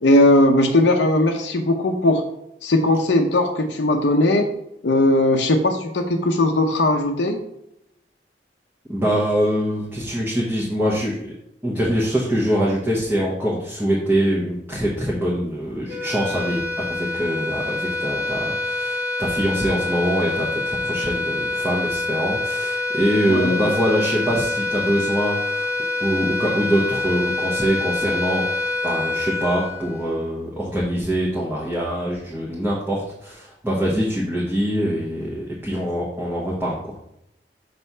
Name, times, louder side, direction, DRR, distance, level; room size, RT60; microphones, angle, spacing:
voice 1, 0.0-2.2 2.6-4.5 4.8-7.4 23.3-23.6, left 1 dB, 85° left, 2 dB, 0.7 m, -18 dB
voice 2, 8.9-11.2 11.6-16.6 16.9-25.7 26.0-37.0, equal, 10° right, -5 dB, 1.1 m, -24 dB
sound 1, 15.9-30.5, left 2 dB, 60° right, 1.8 m, -26 dB
6.0 x 3.3 x 5.5 m, 0.80 s
head